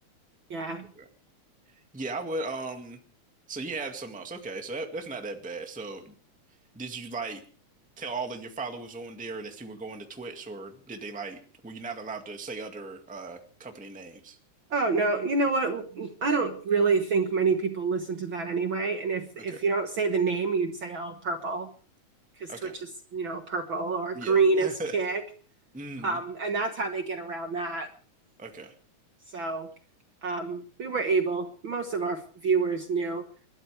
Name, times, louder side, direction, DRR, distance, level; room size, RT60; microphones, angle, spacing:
voice 1, 0.5-0.9 14.7-21.7 22.4-25.2 26.0-27.9 29.3-29.7 30.2-33.2, right 4 dB, 50° right, 6 dB, 1.7 m, -28 dB
voice 2, 1.9-3.0 3.5-6.1 6.7-7.4 8.0-14.4 19.4-19.6 22.5-22.8 24.1-24.9 25.7-26.2 28.4-28.7, right 3 dB, 5° right, 4 dB, 1.3 m, -37 dB
30.0 x 12.5 x 3.4 m, 0.41 s
omnidirectional pair, 3.4 m